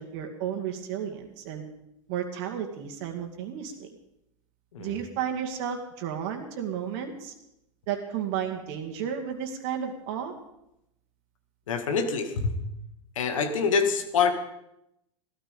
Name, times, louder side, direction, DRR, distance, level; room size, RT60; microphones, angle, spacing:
voice 1, 0.0-1.7 2.1-3.9 4.8-7.3 7.9-10.3, right 8 dB, 60° right, 3 dB, 2.2 m, -33 dB
voice 2, 11.7-12.5 13.2-14.3, left 5 dB, 80° left, 8 dB, 2.1 m, -25 dB
16.5 x 13.0 x 5.4 m, 0.84 s
hypercardioid pair, 95°, 17 cm